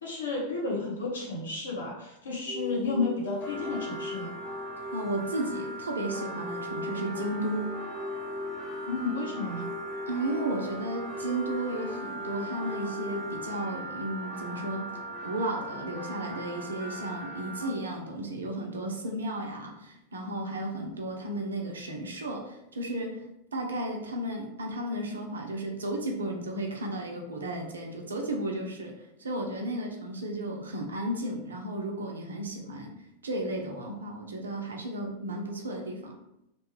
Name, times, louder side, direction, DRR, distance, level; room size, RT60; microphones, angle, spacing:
voice 1, 0.0-4.3 8.9-9.7, left 3 dB, 65° left, -3 dB, 0.9 m, -32 dB
sound 1, 2.5-13.4, left 3 dB, 20° right, 0.7 m, -39 dB
sound 2, 3.4-17.7, right 2 dB, 30° left, 0.5 m, -40 dB
voice 2, 4.9-7.7 10.1-14.9 15.2-32.9 33.2-36.1, right 1 dB, 70° right, 1 dB, 0.5 m, -34 dB
2.6 x 2.2 x 3.1 m, 0.85 s
figure-of-eight pair, 90°, 0 cm